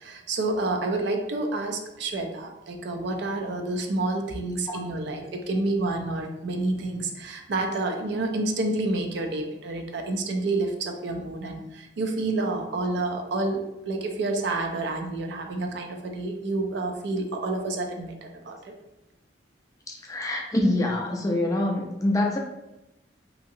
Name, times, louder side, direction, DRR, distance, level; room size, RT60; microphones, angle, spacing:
voice 1, 0.0-18.7, right 2 dB, 65° right, 4 dB, 0.4 m, -29 dB
voice 2, 19.9-22.4, left 1 dB, 20° left, 0 dB, 0.4 m, -25 dB
2.7 x 2.7 x 2.6 m, 0.95 s
head